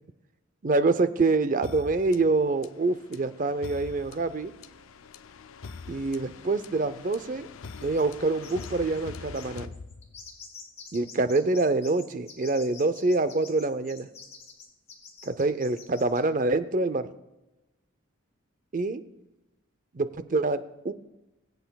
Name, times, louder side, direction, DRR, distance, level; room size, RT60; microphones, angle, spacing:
voice 1, 0.6-4.5 5.9-7.5 7.8-9.7 10.9-14.1 15.2-17.1 18.7-19.0 19.9-20.9, right 3 dB, 40° right, 12 dB, 0.5 m, -26 dB
sound 1, 1.6-10.5, left 5 dB, 85° left, 0.5 m, -44 dB
sound 2, 7.8-8.1 8.4-8.7 9.0-9.1 9.3-16.2, left 5 dB, 30° left, 2.5 m, -47 dB
22.5 x 8.0 x 2.3 m, 0.99 s
head